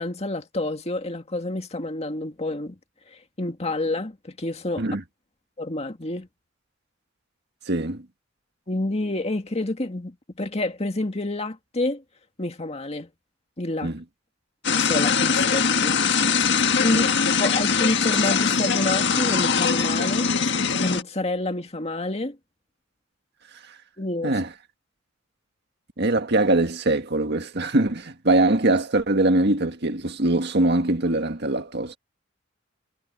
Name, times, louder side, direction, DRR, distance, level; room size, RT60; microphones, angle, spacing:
voice 1, 0.0-2.8 3.1-4.8 5.6-6.3 8.7-12.0 12.4-13.1 13.6-13.9 14.7-16.0 16.8-17.1 17.4-20.3 20.8-22.4 24.0-24.4, left 2 dB, 35° left, 2.1 m, -28 dB
voice 2, 7.7-8.0 13.8-14.0 16.9-17.0 24.2-24.5 26.0-32.0, right 2 dB, 60° right, 1.8 m, -22 dB
sound 1, 14.6-21.0, left 6 dB, 60° left, 1.4 m, -22 dB
head